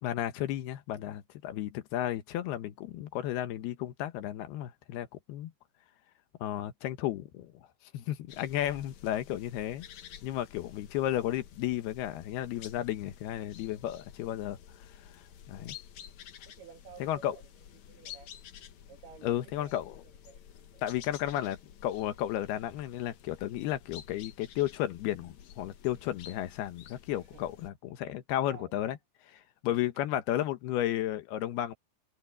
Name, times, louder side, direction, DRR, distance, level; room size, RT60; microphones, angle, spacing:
voice 1, 0.0-5.5 6.4-7.5 7.9-9.9 10.2-14.6 15.5-15.8 17.0-17.4 19.2-19.9 20.8-29.0 29.3-31.7, left 12 dB, 75° left, 3.0 m, -33 dB
sound 1, 8.3-27.7, left 9 dB, 60° left, 2.1 m, -51 dB
voice 2, 16.5-17.4 17.7-18.3 18.9-20.8 27.1-27.6 28.0-28.1 28.5-28.8 29.6-29.9, right 6 dB, 70° right, 4.4 m, -54 dB
omnidirectional pair, 4.7 m